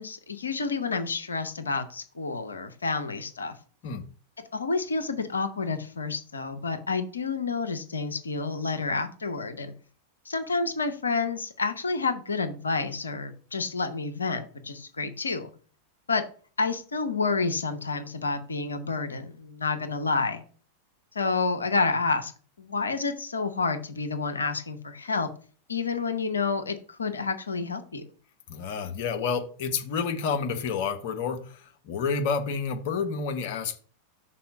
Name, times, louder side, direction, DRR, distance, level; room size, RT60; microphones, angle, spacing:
voice 1, 0.0-3.5 4.5-9.7 10.3-15.5 16.1-16.2 16.6-20.4 21.1-22.3 22.6-25.3 25.7-28.0, left 4 dB, 75° left, 8 dB, 0.7 m, -29 dB
voice 2, 28.5-33.8, left 5 dB, 50° left, 6 dB, 1.0 m, -29 dB
6.0 x 4.1 x 5.0 m, 0.41 s
figure-of-eight pair, 90°, 0 cm